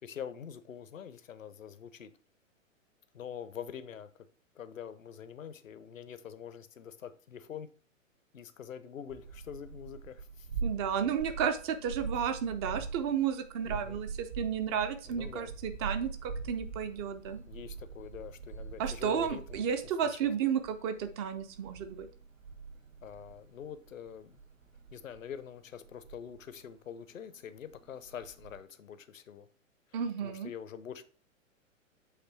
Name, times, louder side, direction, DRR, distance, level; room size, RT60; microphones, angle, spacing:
voice 1, 0.0-2.1 3.1-4.1 4.5-7.7 8.3-10.5 13.6-14.0 15.1-15.5 17.5-19.6 20.0-20.2 23.0-24.4 24.9-29.5 30.2-31.0, left 8 dB, 75° left, 0.8 m, -45 dB
sound 1, 9.1-26.9 27.2-27.3 27.7-28.6, right 5 dB, 80° right, 1.6 m, -43 dB
voice 2, 10.6-17.4 18.8-22.1 29.9-30.5, right 7 dB, 20° right, 0.4 m, -32 dB
8.0 x 3.3 x 4.6 m
figure-of-eight pair, 110°, 40 cm